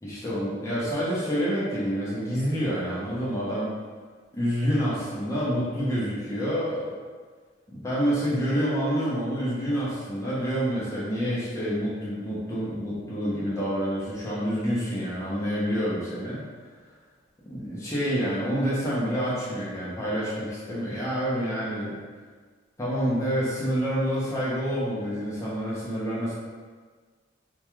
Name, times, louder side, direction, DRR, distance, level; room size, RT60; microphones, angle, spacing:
voice 1, 0.0-3.7 4.3-6.9 7.7-16.4 17.5-22.0 22.8-26.3, equal, 15° left, -8 dB, 0.5 m, -28 dB
2.2 x 2.2 x 2.9 m, 1.5 s
head